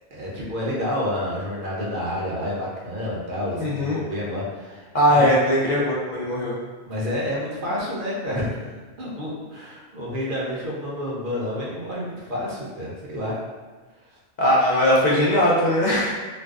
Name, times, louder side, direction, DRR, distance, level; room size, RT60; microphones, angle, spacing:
voice 1, 0.1-5.4 6.8-13.4 14.1-14.2, left 1 dB, 60° right, -5 dB, 0.7 m, -29 dB
voice 2, 3.6-4.0 4.9-6.6 14.4-16.1, equal, 55° left, -6 dB, 0.5 m, -19 dB
2.5 x 2.2 x 2.3 m, 1.3 s
omnidirectional pair, 1.1 m